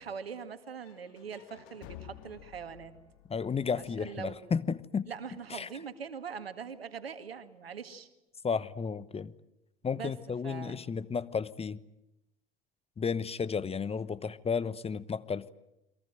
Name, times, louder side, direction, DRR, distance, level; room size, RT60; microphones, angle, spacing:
voice 1, 0.0-2.9 3.8-4.4 5.1-8.1 9.9-10.1 10.4-10.8, right 6 dB, 85° right, 2.0 m, -42 dB
sound 1, 0.8-4.7, left 11 dB, 60° left, 2.4 m, -52 dB
voice 2, 3.3-5.1 5.5-5.7 8.4-9.3 9.8-11.8 13.0-15.5, left 6 dB, 20° left, 1.0 m, -33 dB
29.5 x 23.0 x 7.7 m
figure-of-eight pair, 70°, 29 cm